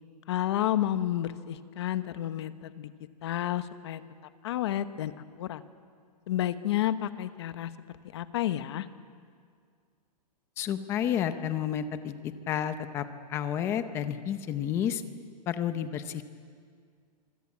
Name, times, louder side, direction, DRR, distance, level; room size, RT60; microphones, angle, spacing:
voice 1, 0.3-2.9 3.2-4.0 4.4-5.6 6.3-7.7 8.1-8.9, left 12 dB, 40° left, 12 dB, 1.0 m, -30 dB
voice 2, 10.6-15.0 15.5-16.3, left 9 dB, 10° left, 11 dB, 0.6 m, -31 dB
25.0 x 24.5 x 8.4 m, 2.1 s
hypercardioid pair, 180°, 21 cm